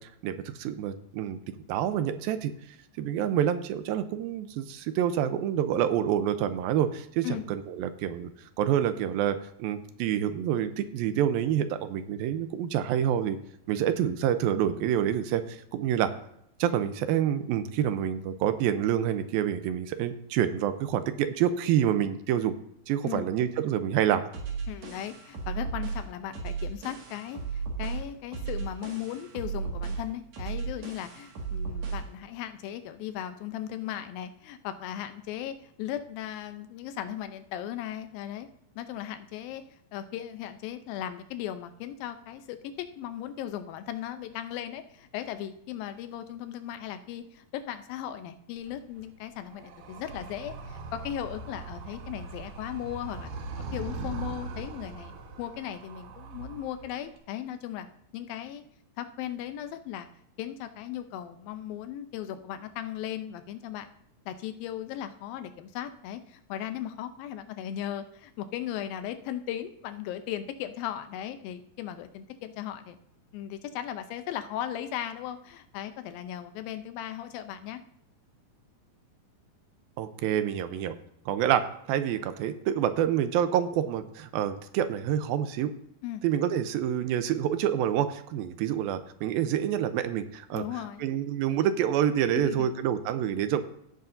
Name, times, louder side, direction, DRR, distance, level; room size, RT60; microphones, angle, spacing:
voice 1, 0.2-1.4 1.7-2.5 3.0-8.3 8.6-13.4 13.7-16.1 16.6-22.5 22.9-24.2 80.0-81.0 81.3-85.7 86.2-90.6 91.0-93.6, right 10 dB, 85° right, 10 dB, 2.5 m, -27 dB
sound 1, 24.3-32.1, right 5 dB, 55° right, 2.9 m, -35 dB
voice 2, 24.7-38.5 38.8-39.6 39.9-53.3 53.7-57.9 58.1-58.6 59.0-60.1 60.4-63.9 64.3-73.0 73.3-77.8 86.0-86.2 90.5-91.1 92.3-92.7, left 11 dB, 80° left, 9 dB, 2.5 m, -37 dB
Animal, 48.6-57.2, right 3 dB, 70° right, 2.5 m, -41 dB
16.5 x 8.3 x 2.6 m, 0.74 s
omnidirectional pair, 4.2 m